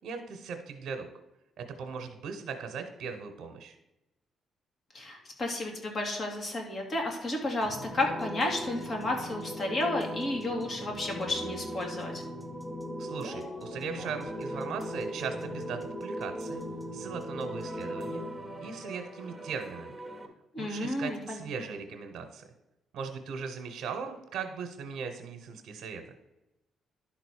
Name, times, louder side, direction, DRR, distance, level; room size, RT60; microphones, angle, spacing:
voice 1, 0.0-1.1 1.6-3.8 13.0-16.6 16.9-18.2 18.6-20.0 20.6-22.4 22.9-26.0, right 6 dB, 75° right, 4 dB, 1.1 m, -38 dB
voice 2, 4.9-12.2 20.5-21.4, left 2 dB, 40° left, 1 dB, 2.6 m, -32 dB
sound 1, 7.6-20.3, equal, ahead, 1.5 m, -39 dB
11.5 x 3.9 x 6.5 m, 0.94 s
cardioid pair, 110°, 0 cm